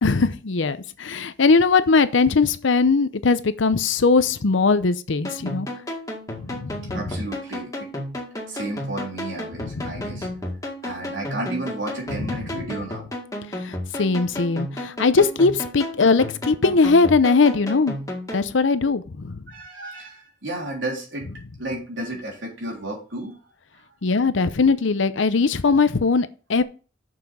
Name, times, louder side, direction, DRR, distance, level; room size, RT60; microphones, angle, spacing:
voice 1, 0.0-5.7 6.4-7.1 9.6-10.4 12.2-12.6 13.6-17.9 18.3-19.4 24.0-26.6, left 4 dB, 85° left, 0.7 m, -20 dB
sound 1, 5.2-18.5, left 1 dB, 20° left, 2.0 m, -33 dB
voice 2, 6.9-7.9 8.5-10.3 10.8-13.1 19.5-21.3 21.6-23.4, right 1 dB, 80° right, 3.7 m, -32 dB
6.7 x 5.9 x 5.3 m
head